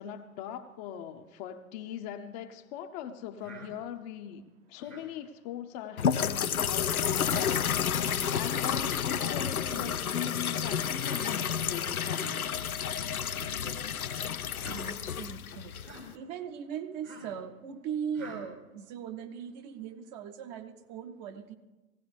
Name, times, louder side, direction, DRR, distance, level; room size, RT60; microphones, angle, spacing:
voice 1, 0.0-7.6 7.9-12.6, left 9 dB, 30° left, 8 dB, 0.7 m, -40 dB
Human voice, 3.4-3.7 4.8-5.1 6.1-6.4 7.2-7.4 8.5-8.7 9.7-10.0 11.0-11.2 12.0-12.4 13.2-13.6 14.5-14.8 15.8-16.1 17.0-17.4 18.1-18.4, right 2 dB, 80° right, 5.4 m, -48 dB
sound 1, 6.0-16.1, left 8 dB, 85° left, 0.6 m, -30 dB
voice 2, 14.7-15.7 16.1-21.6, right 7 dB, 30° right, 7 dB, 0.8 m, -39 dB
18.0 x 16.0 x 3.3 m, 1.2 s
figure-of-eight pair, 100°, 42 cm